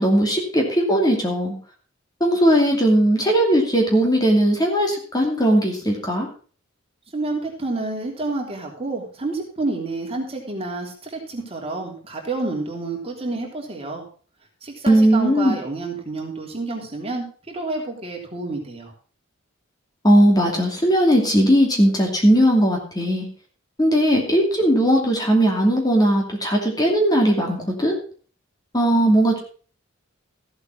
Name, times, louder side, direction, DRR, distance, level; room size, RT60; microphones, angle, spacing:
voice 1, 0.0-1.5 2.2-6.3 14.9-15.5 20.0-23.3 23.8-28.0 28.7-29.4, equal, 20° left, 1 dB, 2.6 m, -18 dB
voice 2, 7.1-14.0 14.6-18.9, right 2 dB, 30° right, 1 dB, 3.2 m, -29 dB
14.5 x 8.0 x 4.6 m, 0.41 s
head